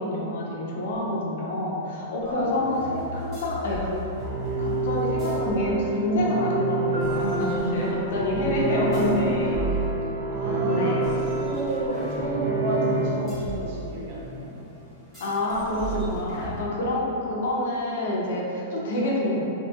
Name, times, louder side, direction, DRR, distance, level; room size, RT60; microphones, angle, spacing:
voice 1, 0.0-4.0 4.6-9.6 10.6-11.1 15.2-19.4, left 1 dB, 60° left, -4 dB, 0.5 m, -27 dB
sound 1, 0.9-1.0 3.3-3.9 5.0-6.3 8.9-10.6 13.3-14.3 15.1-15.5 15.8-17.1, right 2 dB, 10° right, 1.1 m, -36 dB
sound 2, 2.2-5.9 7.0-10.1 11.0-16.6, left 2 dB, 15° left, 0.6 m, -41 dB
voice 2, 2.2-2.9 8.9-9.4 10.3-14.5, right 1 dB, 45° right, -5 dB, 0.5 m, -32 dB
sound 3, 4.2-13.1, right 3 dB, 85° right, 0.7 m, -27 dB
2.7 x 2.6 x 2.3 m, 2.9 s
supercardioid pair, 170°, 0 cm